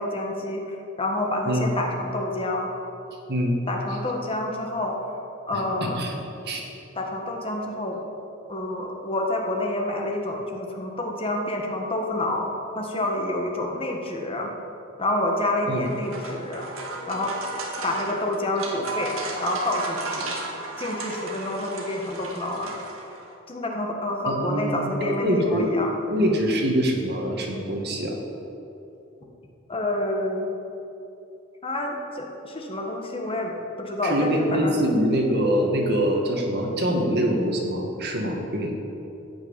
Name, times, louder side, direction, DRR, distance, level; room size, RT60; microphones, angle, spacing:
voice 1, 0.0-2.7 3.7-5.2 5.5-6.0 6.9-8.0 8.5-14.5 15.0-16.7 17.1-17.3 17.8-19.1 19.4-20.3 20.8-22.8 23.5-25.9 29.7-30.5 31.6-34.8, left 1 dB, 25° left, 1 dB, 1.5 m, -28 dB
voice 2, 5.5-6.1 6.5-6.6 15.7-15.8 24.3-25.8 26.1-28.2 34.0-38.8, equal, 55° right, 1 dB, 1.9 m, -24 dB
sound 1, 15.7-23.3, right 2 dB, 85° right, 1.9 m, -34 dB
14.0 x 6.1 x 8.9 m, 2.9 s
head